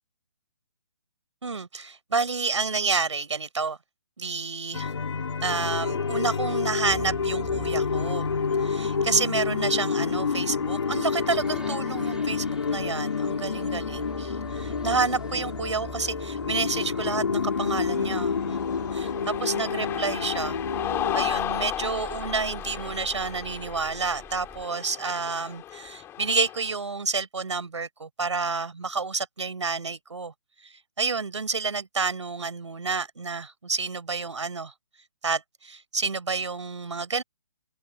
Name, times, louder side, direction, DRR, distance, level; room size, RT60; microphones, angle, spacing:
voice 1, 1.4-3.8 4.2-4.9 5.4-8.3 8.6-18.6 18.9-20.6 21.1-30.3 30.6-34.7 35.2-37.2, right 4 dB, 75° right, 5.1 m, -29 dB
sound 1, 4.7-21.3, left 5 dB, 70° left, 4.5 m, -28 dB
sound 2, 6.9-24.7, right 3 dB, 5° right, 3.6 m, -46 dB
Cheering, 17.5-26.7, left 12 dB, 15° left, 5.5 m, -35 dB
open air
figure-of-eight pair, 140°, 15 cm